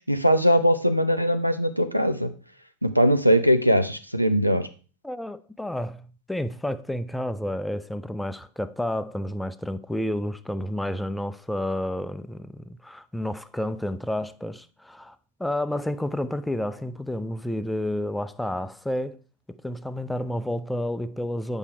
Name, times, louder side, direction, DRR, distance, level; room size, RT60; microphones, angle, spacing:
voice 1, 0.1-2.3 2.8-4.7, equal, 90° right, 0.7 m, -21 dB
voice 2, 5.0-19.2 19.5-21.6, left 1 dB, 5° left, 0.4 m, -30 dB
8.4 x 5.4 x 4.5 m
figure-of-eight pair, 90°, 0 cm